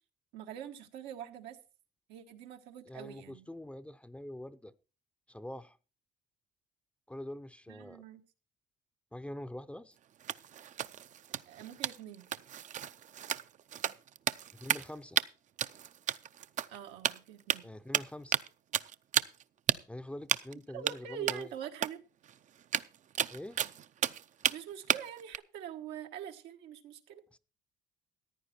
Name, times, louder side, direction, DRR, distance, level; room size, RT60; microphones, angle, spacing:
voice 1, 0.3-1.6 2.1-3.5 7.7-8.2 11.4-12.3 16.7-17.7 20.7-22.0 24.5-27.2, right 9 dB, 90° right, 1.5 m, -44 dB
voice 2, 2.9-4.7 5.3-5.8 7.1-8.0 9.1-9.9 14.5-15.2 17.6-18.4 19.9-21.5 23.3-23.6 27.3-27.4, left 1 dB, 5° left, 0.6 m, -44 dB
sound 1, 10.2-14.9 15.2-15.3 15.6-16.8 17.0-17.6 17.9-18.5 18.7-19.4 19.7-19.8 20.3-20.5 20.9-21.0 21.3-21.4 21.8-21.9 22.2-22.3 22.6-24.6 24.9-25.4, right 10 dB, 45° right, 0.5 m, -32 dB
14.5 x 9.7 x 4.3 m
cardioid pair, 110°, 17 cm